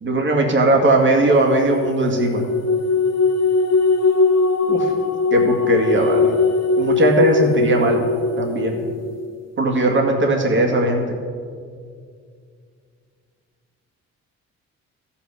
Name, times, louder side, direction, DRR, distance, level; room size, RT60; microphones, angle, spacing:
voice 1, 0.0-2.4 4.7-4.9 5.3-6.3 6.8-8.0 8.4-8.9 9.6-11.2, right 2 dB, 40° right, 1 dB, 1.9 m, -18 dB
sound 1, 1.2-9.1, left 3 dB, 55° left, 1.2 m, -20 dB
14.0 x 5.8 x 6.8 m, 2.1 s
cardioid pair, 90°, 30 cm